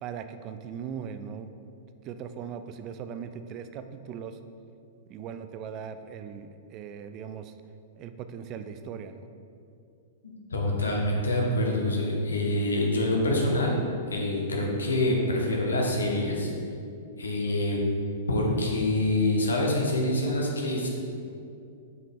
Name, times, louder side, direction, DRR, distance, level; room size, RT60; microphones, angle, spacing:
voice 1, 0.0-1.5 2.0-4.4 5.1-7.5 7.9-9.3, right 7 dB, 35° right, 9 dB, 0.4 m, -39 dB
voice 2, 10.2-13.8 14.1-16.5 17.2-17.8 18.3-20.9, left 1 dB, 75° left, -1 dB, 1.3 m, -26 dB
7.9 x 5.7 x 3.6 m, 2.5 s
figure-of-eight pair, 100°, 0 cm